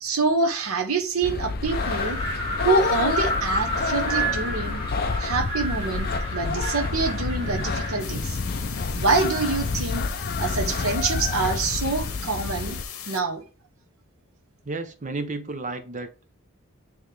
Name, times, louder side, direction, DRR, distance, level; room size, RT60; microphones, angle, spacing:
voice 1, 0.0-2.2 2.6-4.8 5.2-8.4 8.9-10.1 10.4-12.8 13.1-13.4, right 3 dB, 80° right, 1.0 m, -26 dB
sound 1, 1.2-12.8, left 4 dB, 45° left, 0.5 m, -29 dB
Wind, 1.6-8.1, right 1 dB, 25° left, 2.6 m, -31 dB
sound 2, 8.0-13.2, left 8 dB, 85° left, 1.0 m, -38 dB
voice 2, 14.6-16.1, right 3 dB, 35° right, 0.8 m, -33 dB
9.1 x 3.2 x 3.4 m
head